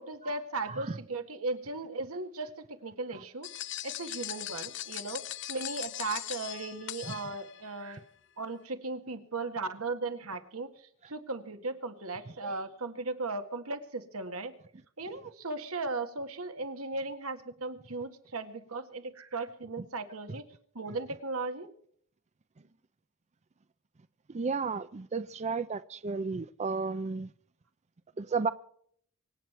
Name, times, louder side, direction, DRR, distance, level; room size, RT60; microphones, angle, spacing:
voice 1, 0.0-2.5 2.8-3.5 3.8-5.2 5.5-8.0 8.4-14.5 15.0-20.5 20.7-21.7, right 3 dB, 80° right, 1.9 m, -37 dB
voice 2, 0.6-1.0 7.1-7.2 12.4-12.5 24.3-27.3 28.2-28.5, right 4 dB, 30° right, 0.5 m, -33 dB
sound 1, 3.4-7.7, left 14 dB, 60° left, 0.6 m, -40 dB
25.0 x 9.2 x 4.5 m
head